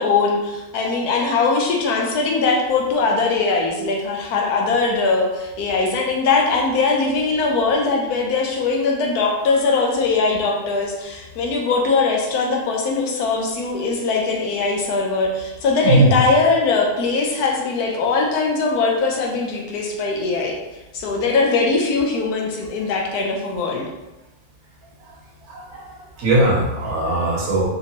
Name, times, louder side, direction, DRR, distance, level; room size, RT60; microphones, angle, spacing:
voice 1, 0.0-20.6 20.9-23.9, left 4 dB, 85° left, 0 dB, 1.2 m, -21 dB
voice 2, 15.8-16.2 25.5-27.6, right 2 dB, 70° right, -3 dB, 1.4 m, -19 dB
3.3 x 2.9 x 2.9 m, 1.0 s
omnidirectional pair, 1.6 m